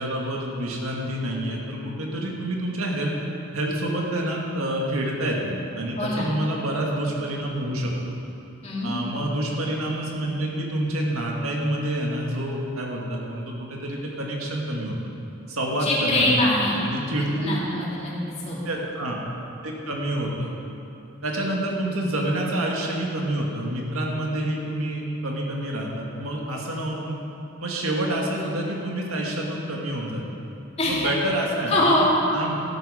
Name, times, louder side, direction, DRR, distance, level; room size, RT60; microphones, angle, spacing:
voice 1, 0.0-3.2 3.5-7.9 8.8-15.0 15.5-16.3 16.8-17.6 18.6-19.2 19.6-20.5 21.2-27.2 27.6-30.2 30.9-31.9 32.3-32.6, right 1 dB, 80° right, -1 dB, 1.9 m, -28 dB
voice 2, 6.0-6.3 8.6-8.9 15.8-16.8 17.2-18.1 18.4-18.7 30.8-31.1 31.7-32.2, left 1 dB, 30° left, -6 dB, 2.9 m, -23 dB
13.0 x 12.5 x 5.0 m, 2.9 s
head